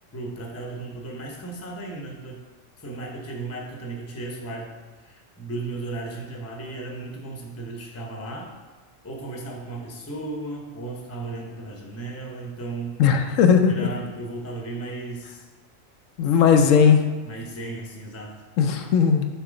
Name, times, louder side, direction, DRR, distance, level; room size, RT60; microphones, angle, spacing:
voice 1, 0.1-2.4 2.8-4.7 5.0-8.5 9.0-13.0 13.7-15.4 16.7-16.9 17.3-18.3, right 2 dB, 15° left, 0 dB, 0.6 m, -35 dB
voice 2, 13.0-13.7 16.2-17.0 18.6-19.3, left 7 dB, 85° left, 6 dB, 1.0 m, -17 dB
6.7 x 2.9 x 5.0 m, 1.3 s
omnidirectional pair, 1.3 m